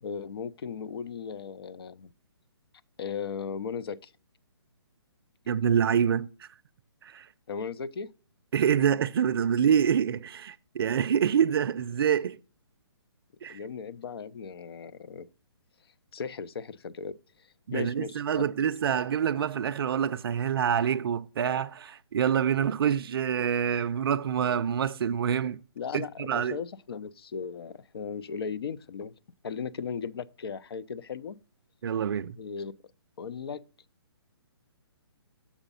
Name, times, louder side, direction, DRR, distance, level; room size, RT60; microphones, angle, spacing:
voice 1, 0.0-2.1 3.0-4.1 7.5-8.1 13.5-15.3 16.1-17.2 17.7-18.5 25.8-29.1 29.4-31.4 32.4-32.7 33.2-33.6, left 6 dB, 65° left, 0.5 m, -36 dB
voice 2, 5.5-6.5 7.0-7.3 8.5-12.4 13.4-13.6 17.7-25.6 25.9-26.6 31.8-32.4, right 8 dB, 60° right, 0.4 m, -26 dB
7.2 x 4.9 x 5.4 m
hypercardioid pair, 155°, 14 cm